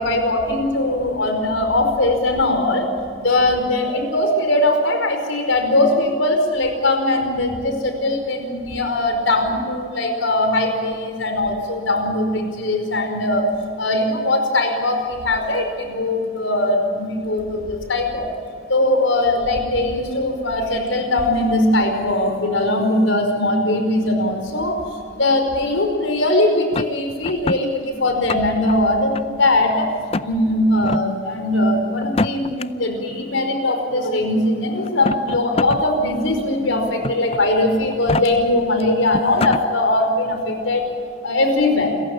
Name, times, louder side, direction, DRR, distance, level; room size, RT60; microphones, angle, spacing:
voice 1, 0.0-2.9 3.2-13.5 13.8-18.3 18.7-24.8 25.1-29.9 30.2-40.8 41.2-41.9, left 1 dB, 80° left, 5 dB, 5.0 m, -20 dB
sound 1, 26.7-27.6 28.1-28.7 29.1-29.7 30.1-30.3 30.8-31.0 32.0-32.6 33.7-33.8 34.8-35.8 36.2-36.3 37.0-37.4 37.9-38.2 38.8-38.9 39.1-39.6, left 3 dB, 30° left, 0.5 m, -24 dB
28.0 x 15.0 x 8.7 m, 2.3 s
head